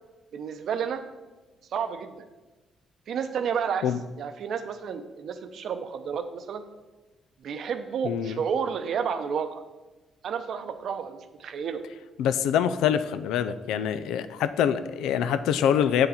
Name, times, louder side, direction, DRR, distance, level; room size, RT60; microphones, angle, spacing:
voice 1, 0.3-1.0 1.7-2.3 3.1-3.9 4.2-6.6 7.4-9.6 10.2-11.8, right 7 dB, 65° right, 9 dB, 0.7 m, -31 dB
voice 2, 8.0-8.4 12.2-16.1, left 9 dB, 90° left, 12 dB, 0.4 m, -25 dB
7.9 x 6.8 x 4.2 m, 1.2 s
cardioid pair, 90°, 0 cm